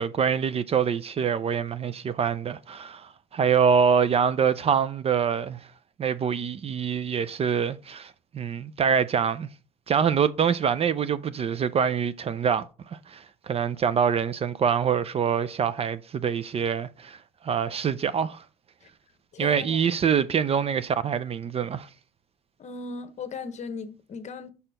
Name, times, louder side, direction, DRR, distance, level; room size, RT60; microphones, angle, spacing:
voice 1, 0.0-5.6 6.0-9.5 9.9-12.7 12.9-17.2 17.4-18.4 19.4-21.9, right 7 dB, 35° right, 0.4 m, -25 dB
voice 2, 19.3-19.8 22.6-24.5, left 4 dB, 45° left, 0.9 m, -37 dB
5.5 x 4.4 x 5.1 m
cardioid pair, 110°, 17 cm